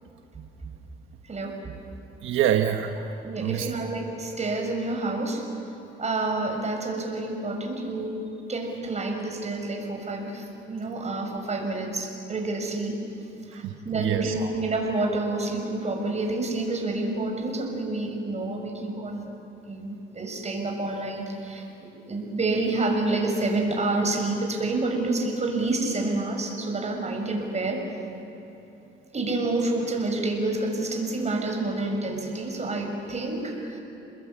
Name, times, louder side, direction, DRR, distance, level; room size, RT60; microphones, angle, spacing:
voice 1, 1.2-1.8 3.2-5.4 6.0-8.1 8.5-13.0 13.5-19.3 19.7-27.8 29.1-33.8, right 2 dB, 35° right, 2 dB, 6.4 m, -28 dB
voice 2, 2.2-3.7 13.5-14.3, right 10 dB, 85° right, 5 dB, 1.3 m, -26 dB
29.0 x 21.5 x 8.8 m, 2.9 s
cardioid pair, 90°, 20 cm